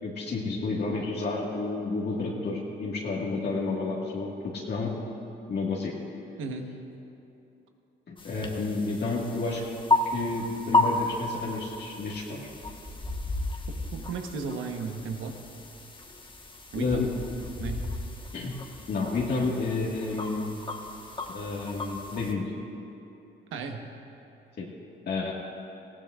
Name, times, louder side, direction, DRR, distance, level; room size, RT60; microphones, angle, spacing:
voice 1, 0.0-4.9 5.5-5.9 8.1-9.6 10.1-12.5 16.7-17.1 18.3-18.5 18.9-20.6 21.3-22.5 24.6-24.7 25.1-25.3, left 3 dB, 55° left, -4 dB, 1.7 m, -30 dB
voice 2, 6.4-6.7 13.9-15.4 16.7-17.1 17.6-17.9 23.5-23.9, right 5 dB, 90° right, 4 dB, 1.1 m, -34 dB
sound 1, 8.2-22.3, left 2 dB, 25° left, 1.3 m, -33 dB
19.0 x 15.0 x 2.4 m, 2.9 s
cardioid pair, 90°, 20 cm